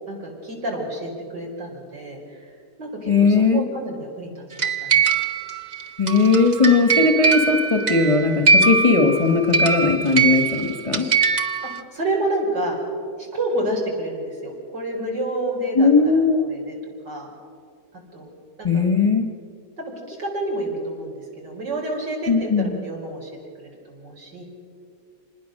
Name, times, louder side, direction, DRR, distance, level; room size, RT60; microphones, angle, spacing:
voice 1, 0.1-2.5 2.8-5.1 11.6-12.8 13.2-16.8 17.1-17.3 18.1-18.3 18.6-18.8 19.8-23.3 23.6-24.4, right 1 dB, 80° right, -1 dB, 5.3 m, -29 dB
voice 2, 3.1-3.6 6.0-11.1 15.8-16.4 18.6-19.3 22.3-22.7, left 4 dB, 20° left, 5 dB, 1.2 m, -18 dB
sound 1, 4.6-11.8, right 4 dB, 35° right, 0.8 m, -21 dB
26.5 x 20.0 x 6.5 m, 2.4 s
omnidirectional pair, 1.8 m